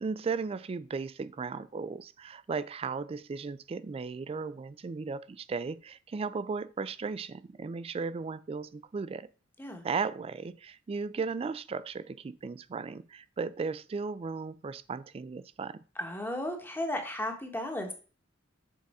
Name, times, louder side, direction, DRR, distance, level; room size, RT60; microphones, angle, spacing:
voice 1, 0.0-9.3 9.8-15.8, right 4 dB, 30° right, 17 dB, 0.3 m, -36 dB
voice 2, 16.0-17.9, left 1 dB, 10° left, 4 dB, 1.1 m, -34 dB
6.4 x 4.1 x 4.7 m, 0.38 s
head